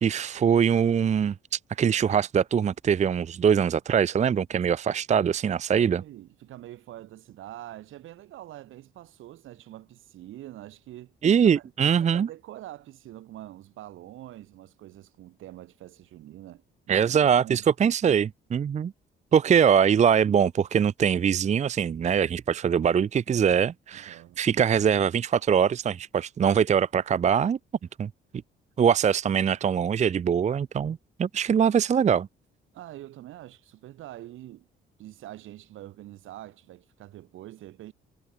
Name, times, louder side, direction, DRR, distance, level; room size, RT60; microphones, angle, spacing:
voice 1, 0.0-6.0 11.2-12.3 16.9-18.9 19.3-27.6 28.0-28.1 28.8-32.3, right 7 dB, 35° right, 0.5 m, -23 dB
voice 2, 5.7-11.2 11.5-17.6 23.9-24.4 32.7-34.7 35.0-37.9, right 14 dB, 85° right, 6.6 m, -45 dB
cardioid pair, 90°, 20 cm